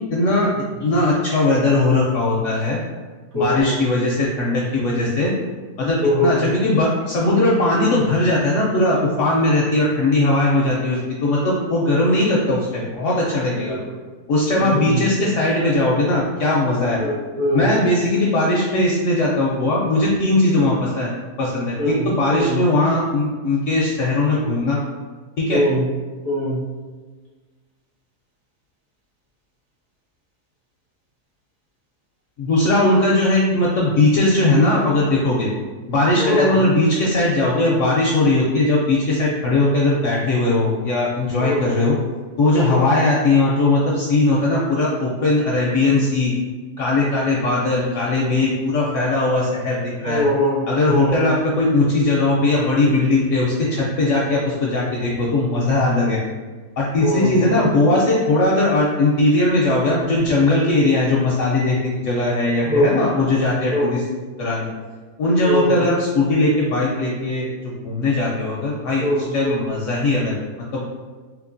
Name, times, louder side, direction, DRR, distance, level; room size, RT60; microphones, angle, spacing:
voice 1, 0.1-0.5 0.8-2.8 3.3-5.3 5.8-13.8 14.3-17.0 17.5-21.1 21.4-24.8 25.4-25.6 32.4-35.5 35.9-41.9 42.4-46.3 46.8-50.2 50.7-56.2 56.8-64.0 64.4-64.7 65.2-69.0 69.3-70.3 70.7-70.8, left 2 dB, 65° left, -3 dB, 0.8 m, -19 dB
voice 2, 3.3-3.8 6.0-6.5 13.7-13.8 14.5-15.0 17.0-17.7 21.8-22.6 25.5-25.8 26.2-26.6 36.2-36.5 41.4-41.6 42.7-42.9 50.0-50.6 50.9-51.2 57.0-57.6 62.6-62.9 63.7-63.9 65.4-65.8 69.0-69.6, equal, 50° right, -8 dB, 1.4 m, -22 dB
3.5 x 2.9 x 2.6 m, 1.4 s
omnidirectional pair, 1.7 m